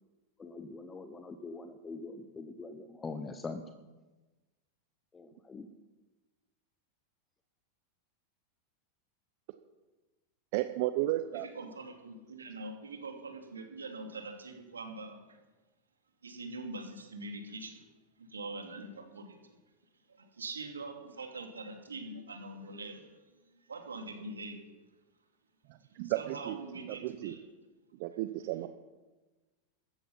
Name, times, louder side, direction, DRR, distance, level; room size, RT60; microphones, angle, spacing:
voice 1, 0.4-3.6 5.1-5.7, left 3 dB, 20° left, 8 dB, 1.2 m, -43 dB
voice 2, 10.5-11.5 25.9-26.6 26.8-27.3 28.0-28.7, right 15 dB, 55° right, 9 dB, 0.9 m, -33 dB
voice 3, 11.3-15.4 16.2-17.8 18.2-19.6 20.1-23.4 23.6-24.6 25.9-27.4, right 2 dB, 90° right, 4 dB, 2.8 m, -44 dB
15.5 x 14.0 x 5.6 m, 1.2 s
hypercardioid pair, 95°, 0 cm